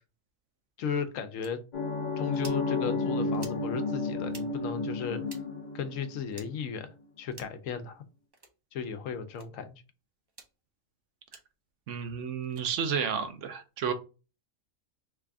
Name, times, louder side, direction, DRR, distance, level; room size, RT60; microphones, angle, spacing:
voice 1, 0.8-1.6 2.2-5.2 5.7-8.0 8.7-9.8, left 6 dB, 75° left, 1.0 m, -35 dB
sound 1, 1.4-1.5 2.3-2.6 3.3-3.6 4.3-4.5 5.3-5.4 6.3-6.5 7.3-7.6 8.3-8.5 9.3-9.5 10.3-10.5 11.3-11.4 12.4-12.7, right 3 dB, 35° right, 0.4 m, -49 dB
sound 2, 1.7-6.5, left 3 dB, 45° left, 0.6 m, -32 dB
voice 2, 11.9-13.9, right 7 dB, 70° right, 0.9 m, -31 dB
3.3 x 2.4 x 3.4 m
omnidirectional pair, 1.4 m